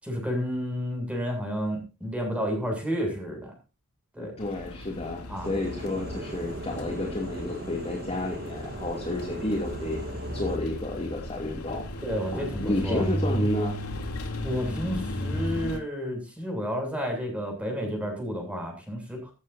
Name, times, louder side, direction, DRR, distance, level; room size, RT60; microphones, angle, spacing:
voice 1, 0.0-3.5 4.1-4.3 5.3-5.5 12.0-13.0 14.4-19.3, equal, 5° right, 2 dB, 7.6 m, -31 dB
voice 2, 4.2-10.0 10.3-11.8 12.3-13.8, left 1 dB, 25° left, 0 dB, 2.7 m, -31 dB
sound 1, 4.4-15.8, equal, 85° left, 3.0 m, -35 dB
sound 2, 5.4-10.6, right 2 dB, 45° right, 1.5 m, -39 dB
17.0 x 14.5 x 2.7 m, 0.30 s
head